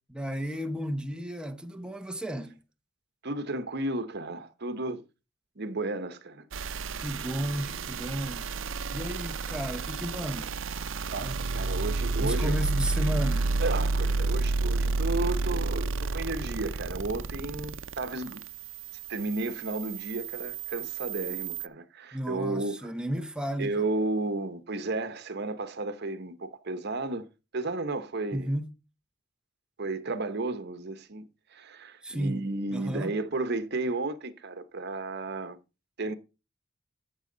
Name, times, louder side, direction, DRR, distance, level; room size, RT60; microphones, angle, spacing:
voice 1, 0.1-2.6 7.0-8.5 8.9-10.6 11.2-11.4 12.2-13.6 22.1-23.8 28.3-28.7 32.0-33.2, equal, 5° right, 0.9 m, -33 dB
voice 2, 3.2-5.0 5.6-6.5 11.1-12.5 13.6-18.4 19.1-22.7 23.6-27.3 27.5-28.5 29.8-35.6 36.0-36.1, right 2 dB, 55° right, 1.1 m, -33 dB
sound 1, 6.5-21.7, right 3 dB, 75° right, 0.6 m, -31 dB
14.0 x 6.4 x 4.0 m
head